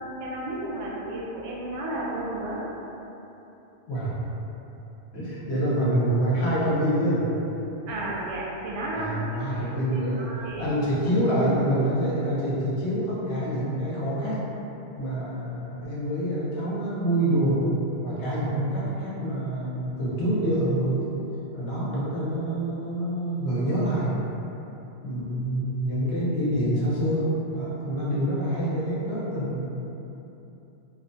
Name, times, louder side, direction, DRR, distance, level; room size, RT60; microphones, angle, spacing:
voice 1, 0.0-2.6 7.9-10.7 25.2-25.5, right 1 dB, 85° right, -5 dB, 0.9 m, -33 dB
voice 2, 5.1-7.3 8.9-10.3 10.6-14.5 15.0-17.6 18.0-21.0 21.5-24.2 25.0-29.7, right 1 dB, 90° left, -8 dB, 1.1 m, -26 dB
3.0 x 2.1 x 2.5 m, 3.0 s
omnidirectional pair, 1.1 m